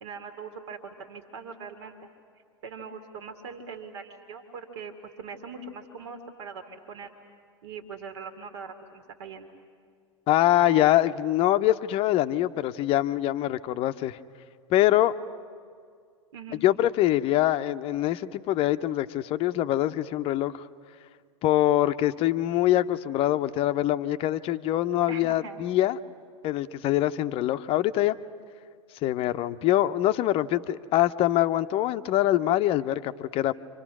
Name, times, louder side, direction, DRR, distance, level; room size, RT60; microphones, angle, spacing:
voice 1, 0.0-2.0 2.6-4.9 5.2-7.1 7.6-9.5 16.3-16.6 25.1-25.6, right 5 dB, 60° right, 6 dB, 2.2 m, -41 dB
voice 2, 10.3-14.2 14.7-15.2 16.6-20.6 21.4-26.0 26.4-28.2 29.0-33.5, left 14 dB, 35° left, 11 dB, 0.7 m, -24 dB
29.0 x 26.0 x 6.1 m, 2.2 s
figure-of-eight pair, 90°, 17 cm